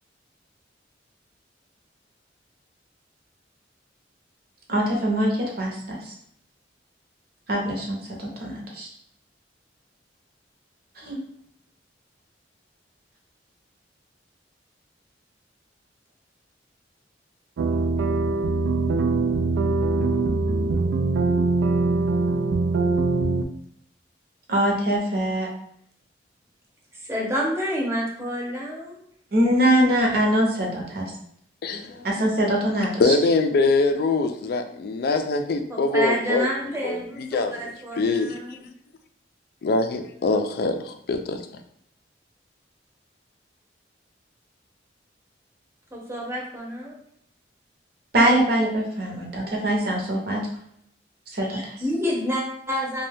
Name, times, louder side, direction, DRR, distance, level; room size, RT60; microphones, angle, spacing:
voice 1, 4.7-6.1 7.5-8.9 11.0-11.2 24.5-25.5 29.3-31.1 32.0-33.1 48.1-50.5 51.3-51.8, right 1 dB, 55° right, -1 dB, 0.8 m, -23 dB
sound 1, 17.6-23.4, right 3 dB, 90° right, 0.3 m, -22 dB
voice 2, 26.9-29.0 35.7-38.7 45.9-47.0 51.5-53.1, equal, 15° right, -2 dB, 0.7 m, -29 dB
voice 3, 31.6-32.1 33.0-36.5 36.8-37.0 37.3-37.6 38.0-38.4 39.6-41.4, left 3 dB, 55° left, 7 dB, 0.3 m, -23 dB
2.7 x 2.2 x 3.4 m, 0.68 s
head